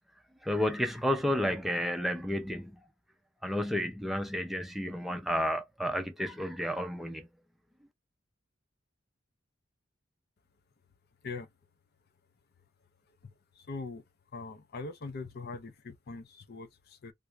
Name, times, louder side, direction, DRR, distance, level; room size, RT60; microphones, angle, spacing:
voice 1, 0.4-2.8 3.4-7.3, equal, ahead, 0.6 m, -31 dB
voice 2, 13.6-14.0 14.3-17.1, left 3 dB, 50° left, 0.6 m, -41 dB
3.4 x 2.5 x 3.1 m
head